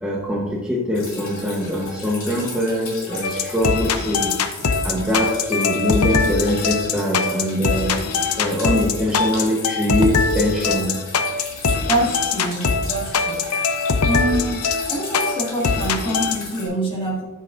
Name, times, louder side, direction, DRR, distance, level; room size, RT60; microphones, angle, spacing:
voice 1, 0.0-4.4 4.8-8.0 8.4-11.0, left 1 dB, 5° right, -5 dB, 0.9 m, -23 dB
Drip, 0.9-16.7, left 3 dB, 65° left, 2.7 m, -36 dB
sound 1, 3.2-16.4, left 4 dB, 85° left, 0.6 m, -22 dB
voice 2, 11.8-13.5 14.1-17.2, right 1 dB, 25° left, -4 dB, 1.9 m, -25 dB
9.2 x 8.1 x 2.5 m, 1.2 s
head